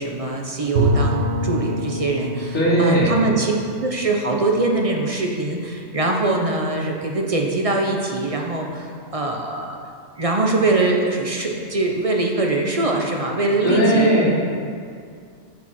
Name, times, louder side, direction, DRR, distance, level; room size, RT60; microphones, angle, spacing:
voice 1, 0.0-3.5 3.8-9.8 10.2-14.3, right 2 dB, 35° right, 1 dB, 0.7 m, -23 dB
Bowed string instrument, 0.8-5.6, equal, 55° right, 1.6 m, -26 dB
voice 2, 2.5-3.2 13.6-14.3, right 1 dB, 80° left, -8 dB, 3.0 m, -17 dB
9.3 x 5.0 x 6.0 m, 2.2 s
omnidirectional pair, 1.4 m